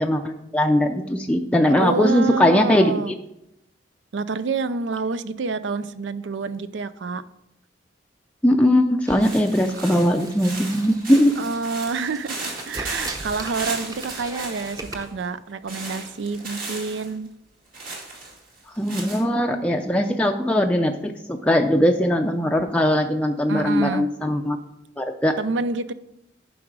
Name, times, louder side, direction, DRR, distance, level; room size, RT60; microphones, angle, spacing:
voice 1, 0.0-2.9 8.4-11.4 18.8-24.6 25.0-25.4, left 1 dB, 5° left, 2 dB, 0.4 m, -20 dB
voice 2, 1.8-3.1 4.1-7.2 9.8-9.9 11.4-17.3 23.5-24.1 25.4-25.9, right 4 dB, 85° right, 14 dB, 0.5 m, -28 dB
sound 1, 9.1-15.1, right 1 dB, 20° right, 0.8 m, -39 dB
sound 2, 9.2-15.1 15.7-17.1 17.7-19.2, right 3 dB, 50° right, 2.2 m, -36 dB
11.0 x 4.8 x 4.7 m, 0.86 s
head